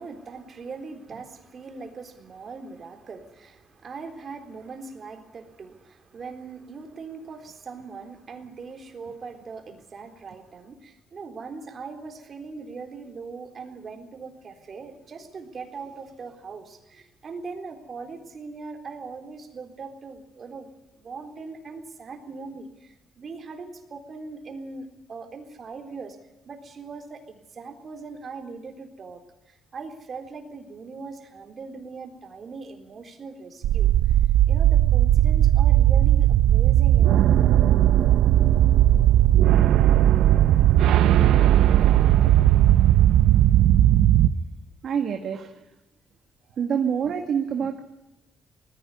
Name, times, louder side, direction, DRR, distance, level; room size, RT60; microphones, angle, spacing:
voice 1, 0.0-20.7 21.0-26.2 26.4-29.2 29.5-33.9 34.5-37.2 37.9-38.1, right 4 dB, 45° right, 4 dB, 3.8 m, -40 dB
sound 1, 33.6-44.3, right 12 dB, 85° right, 0.7 m, -17 dB
voice 2, 44.8-45.5 46.6-47.8, right 7 dB, 65° right, 4 dB, 1.8 m, -26 dB
19.5 x 15.5 x 9.9 m, 0.97 s
cardioid pair, 90°, 0 cm